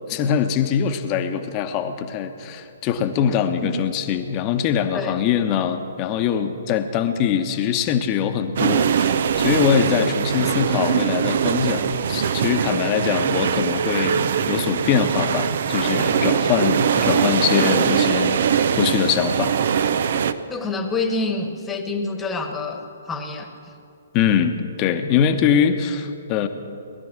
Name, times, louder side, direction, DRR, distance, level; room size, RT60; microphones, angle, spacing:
voice 1, 0.1-19.6 24.1-26.5, left 8 dB, 30° left, 8 dB, 1.1 m, -23 dB
sound 1, 8.6-20.3, right 7 dB, 55° right, 0.6 m, -21 dB
voice 2, 20.5-23.5, left 3 dB, 10° left, 5 dB, 1.3 m, -27 dB
19.0 x 11.5 x 6.1 m, 2.6 s
figure-of-eight pair, 125°, 0 cm